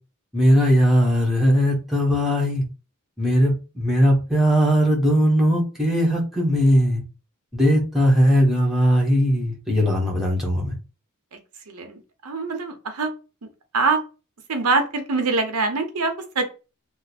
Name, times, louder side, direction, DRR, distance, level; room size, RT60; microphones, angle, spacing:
voice 1, 0.3-2.7 3.2-7.0 7.5-10.7, equal, ahead, -3 dB, 1.0 m, -19 dB
voice 2, 11.7-13.1 13.7-14.0 14.5-16.4, right 3 dB, 85° right, 6 dB, 0.8 m, -24 dB
3.1 x 2.0 x 4.1 m, 0.31 s
head